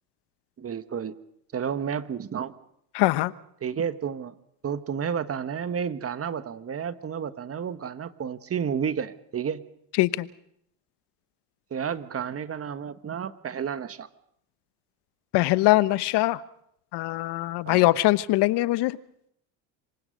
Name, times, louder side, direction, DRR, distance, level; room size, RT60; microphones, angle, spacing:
voice 1, 0.6-1.1 1.5-2.5 3.6-4.3 4.6-9.6 11.7-14.1 17.6-17.9, right 7 dB, 30° right, 12 dB, 1.4 m, -31 dB
voice 2, 2.9-3.3 10.0-10.3 15.3-16.4 16.9-19.0, left 18 dB, 55° left, 15 dB, 1.1 m, -22 dB
27.0 x 23.5 x 5.3 m, 0.75 s
supercardioid pair, 90°, 47 cm